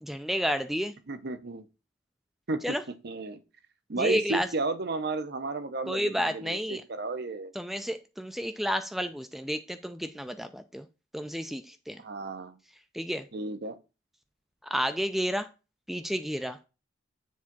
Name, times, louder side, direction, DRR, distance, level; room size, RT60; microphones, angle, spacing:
voice 1, 0.0-0.9 2.6-2.8 4.0-4.5 5.9-6.8 7.6-10.9 11.1-12.0 12.9-13.3 14.7-15.5 15.9-16.6, equal, ahead, 0.3 m, -31 dB
voice 2, 1.1-1.7 2.5-2.8 3.0-3.4 3.9-7.5 12.0-12.6 13.3-13.8, right 3 dB, 55° right, 0.7 m, -33 dB
7.3 x 3.6 x 5.9 m
head